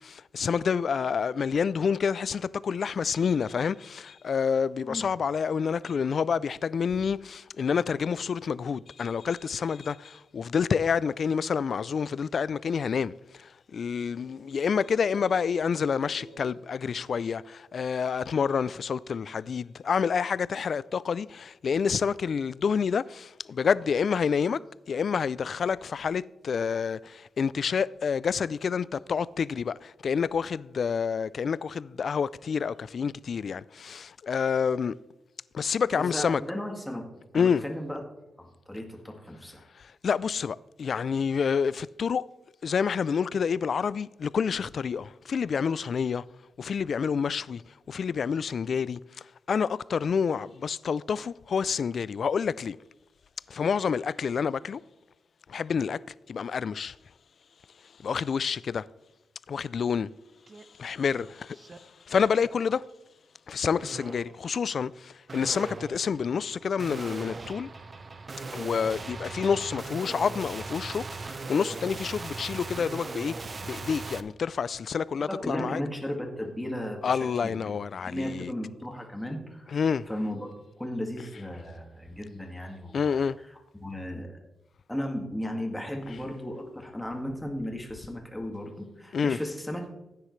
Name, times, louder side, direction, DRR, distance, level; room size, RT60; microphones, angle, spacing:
voice 1, 0.0-24.6 24.9-34.9 35.5-36.4 37.3-37.6 39.7-42.2 42.6-46.2 46.6-47.6 47.9-52.8 53.5-54.8 55.5-56.0 56.3-57.0 58.0-58.9 59.5-60.1 60.8-62.8 63.5-67.7 68.5-75.8 77.0-78.5 79.7-80.1 82.9-83.4 89.1-89.4, left 6 dB, 55° left, 0.3 m, -28 dB
sound 1, 13.8-17.7, right 1 dB, 80° right, 3.5 m, -51 dB
voice 2, 35.9-37.1 37.3-38.0 38.4-39.6 75.3-77.7 78.0-79.8 80.1-80.5 80.8-83.3 83.8-84.4 84.9-89.9, left 1 dB, 5° left, 1.9 m, -35 dB
sound 2, 60.5-60.6 61.1-61.8 62.3-62.7 63.8-64.4 65.3-74.2, right 3 dB, 35° right, 0.7 m, -39 dB
15.0 x 9.7 x 3.2 m
cardioid pair, 105°, 0 cm